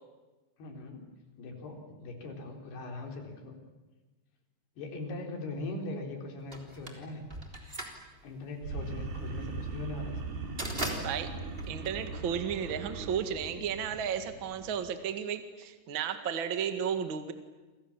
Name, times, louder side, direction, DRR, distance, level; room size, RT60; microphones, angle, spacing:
voice 1, 0.6-1.0 1.4-3.6 4.8-7.3 8.2-10.3, left 2 dB, 80° left, 3 dB, 5.8 m, -40 dB
sound 1, 6.5-12.7, right 1 dB, 15° right, 3.3 m, -40 dB
sound 2, 8.6-14.9, right 3 dB, 80° right, 5.4 m, -40 dB
voice 2, 11.0-11.3 11.7-17.3, right 8 dB, 40° right, 8 dB, 1.9 m, -33 dB
29.5 x 26.5 x 7.3 m, 1.2 s
omnidirectional pair, 4.6 m